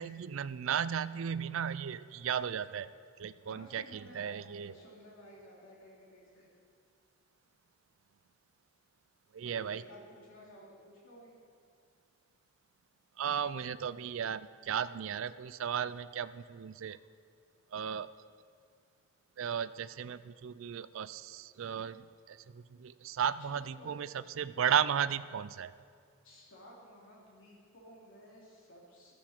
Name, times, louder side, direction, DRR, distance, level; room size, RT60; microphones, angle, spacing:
voice 1, 0.0-2.9 3.2-4.7 9.3-9.8 13.2-17.0 17.7-18.1 19.4-25.7, right 8 dB, 65° right, 15 dB, 0.4 m, -35 dB
voice 2, 3.4-6.5 9.4-11.3 23.5-24.0 26.2-29.1, equal, 65° left, -5 dB, 3.1 m, -54 dB
14.5 x 13.0 x 4.4 m, 2.2 s
head